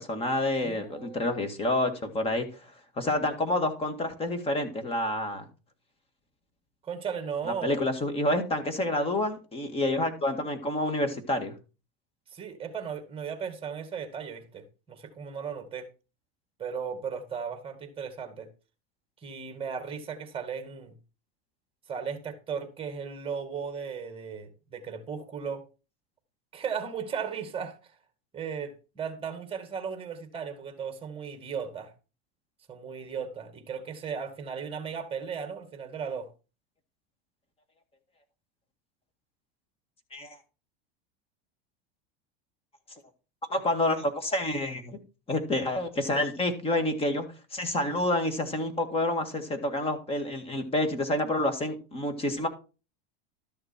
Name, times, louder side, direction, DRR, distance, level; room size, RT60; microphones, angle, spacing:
voice 1, 0.0-2.5 3.0-5.5 7.4-11.5 40.1-40.4 43.5-45.0 45.3-52.5, left 1 dB, 20° left, 2.0 m, -28 dB
voice 2, 0.6-1.5 6.8-7.8 12.3-15.9 16.6-18.5 19.2-21.0 21.9-25.6 26.5-27.8 28.3-31.9 32.7-36.3, right 6 dB, 20° right, 2.2 m, -36 dB
13.0 x 6.7 x 4.4 m
supercardioid pair, 140°, 30 cm